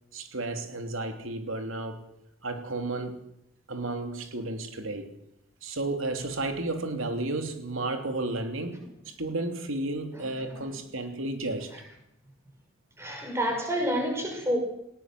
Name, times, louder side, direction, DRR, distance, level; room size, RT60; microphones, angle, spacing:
voice 1, 0.1-2.0 2.4-3.2 3.7-5.1 5.6-8.8 9.0-11.7, right 2 dB, 80° right, 3.1 m, -32 dB
voice 2, 13.0-14.6, equal, 15° right, 5.9 m, -29 dB
19.5 x 18.0 x 7.6 m
head